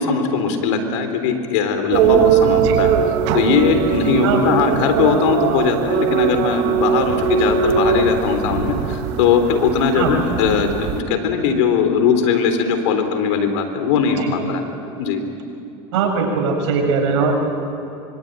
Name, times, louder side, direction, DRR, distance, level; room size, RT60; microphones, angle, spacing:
voice 1, 0.0-2.9 3.3-14.6 15.0-15.2, left 6 dB, 85° left, 7 dB, 3.8 m, -19 dB
sound 1, 1.9-11.0, right 8 dB, 70° right, 2.0 m, -20 dB
voice 2, 4.2-4.5 9.9-10.1 14.2-14.4 15.9-17.4, right 5 dB, 90° right, 2 dB, 6.6 m, -20 dB
25.0 x 25.0 x 9.2 m, 2.8 s
supercardioid pair, 115°, 15 cm